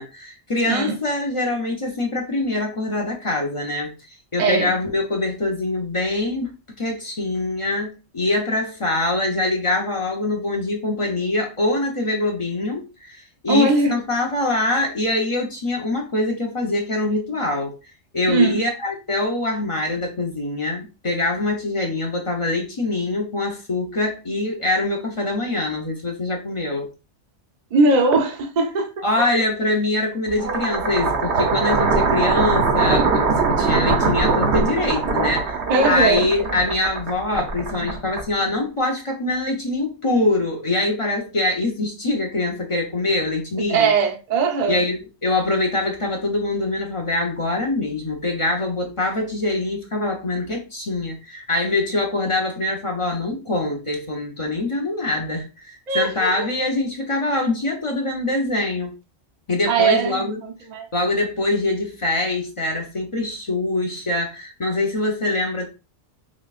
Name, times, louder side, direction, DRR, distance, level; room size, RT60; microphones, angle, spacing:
voice 1, 0.0-3.9 4.3-17.7 18.1-26.9 29.0-43.9 44.7-58.9 59.5-60.4 60.9-65.7, left 2 dB, 30° left, 0.7 m, -24 dB
voice 2, 0.7-1.0 4.4-4.7 13.5-13.9 18.3-18.6 27.7-29.3 35.7-36.3 43.7-44.8 55.9-56.5 59.7-60.9, right 3 dB, 45° right, 0.7 m, -20 dB
sound 1, 30.3-38.6, right 4 dB, 65° right, 1.1 m, -21 dB
6.0 x 2.3 x 2.4 m
omnidirectional pair, 1.3 m